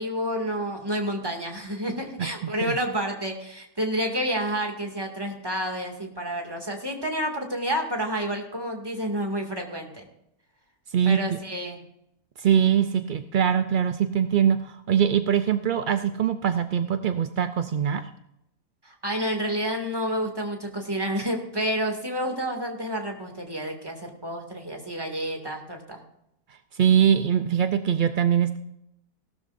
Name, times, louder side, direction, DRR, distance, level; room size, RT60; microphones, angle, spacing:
voice 1, 0.0-10.1 11.1-11.8 18.8-26.0, equal, 15° right, 2 dB, 2.3 m, -29 dB
voice 2, 12.4-18.0 26.8-28.6, right 8 dB, 60° right, 9 dB, 0.5 m, -22 dB
18.0 x 12.5 x 2.6 m, 0.79 s
omnidirectional pair, 1.6 m